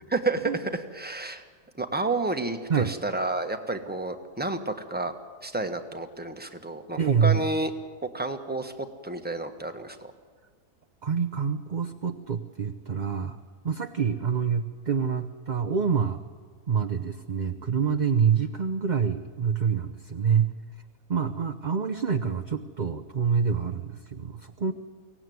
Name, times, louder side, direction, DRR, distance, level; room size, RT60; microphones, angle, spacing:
voice 1, 0.1-1.4 1.8-5.1 5.4-7.7 8.0-8.7 9.0-10.1, right 2 dB, 5° right, 6 dB, 1.3 m, -30 dB
voice 2, 7.0-7.4 11.0-13.4 13.6-16.2 16.7-20.5 21.1-24.7, right 6 dB, 40° right, 5 dB, 0.7 m, -26 dB
23.5 x 17.5 x 9.4 m, 1.5 s
omnidirectional pair, 1.6 m